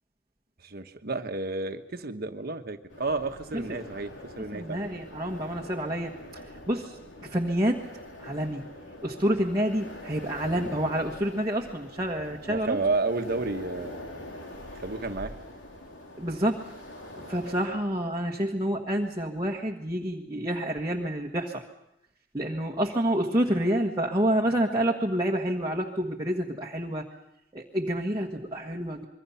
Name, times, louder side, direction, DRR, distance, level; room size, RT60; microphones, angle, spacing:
voice 1, 0.6-4.8 12.5-14.0 14.8-15.3, right 3 dB, 55° right, 7 dB, 1.3 m, -31 dB
sound 1, 2.9-17.7, left 1 dB, 85° left, 3.5 m, -44 dB
voice 2, 4.5-7.8 8.2-8.6 9.0-12.8 16.2-16.6 17.3-21.6 22.3-27.0 27.5-29.0, right 1 dB, 20° right, -1 dB, 1.5 m, -28 dB
26.0 x 23.0 x 5.8 m, 0.84 s
head